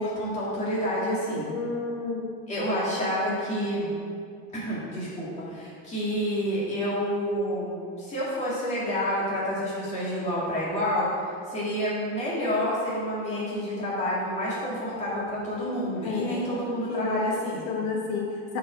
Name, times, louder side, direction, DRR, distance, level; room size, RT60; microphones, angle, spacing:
voice 1, 0.0-1.5 2.5-3.9 4.5-11.1 11.5-17.7, equal, 20° left, -7 dB, 2.3 m, -29 dB
voice 2, 1.5-2.3 16.0-16.5 16.9-17.3 17.6-18.6, left 5 dB, 75° left, -1 dB, 1.4 m, -31 dB
7.2 x 6.7 x 5.2 m, 2.3 s
cardioid pair, 180°, 34 cm